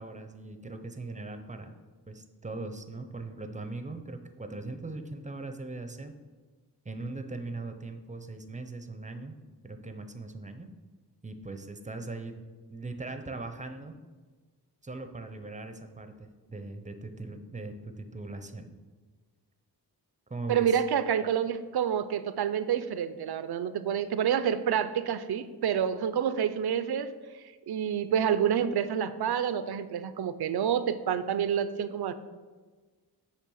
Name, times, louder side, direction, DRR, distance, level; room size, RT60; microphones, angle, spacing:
voice 1, 0.0-1.7 2.1-6.1 6.8-9.3 9.6-10.7 11.2-12.4 12.7-13.9 14.8-18.7 20.3-20.8, right 2 dB, 20° right, 7 dB, 0.5 m, -40 dB
voice 2, 20.5-27.1 27.7-32.1, right 8 dB, 65° right, 13 dB, 0.5 m, -28 dB
8.3 x 3.3 x 6.2 m, 1.4 s
wide cardioid pair, 105°, 41 cm